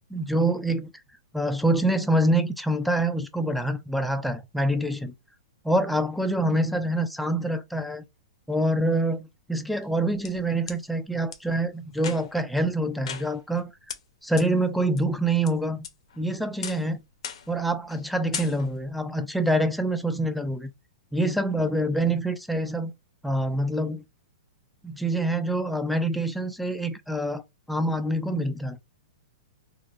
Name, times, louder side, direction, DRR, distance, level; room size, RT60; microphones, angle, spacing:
voice 1, 0.1-0.9 1.3-5.1 5.6-8.0 8.5-13.7 14.2-15.9 16.2-17.0 17.5-20.7 21.1-22.9 23.2-24.0 24.8-27.4 27.7-28.8, right 1 dB, ahead, 0.4 m, -26 dB
sound 1, 9.8-10.8 11.3-11.4 11.9-12.5 13.0-13.6 13.9-14.0 14.4-14.5 15.0-15.5 15.8-16.2 16.6-16.9 17.2-17.6 17.9-18.0 18.3-18.9, left 7 dB, 70° left, 0.7 m, -37 dB
3.7 x 2.0 x 2.3 m
hypercardioid pair, 125°, 3 cm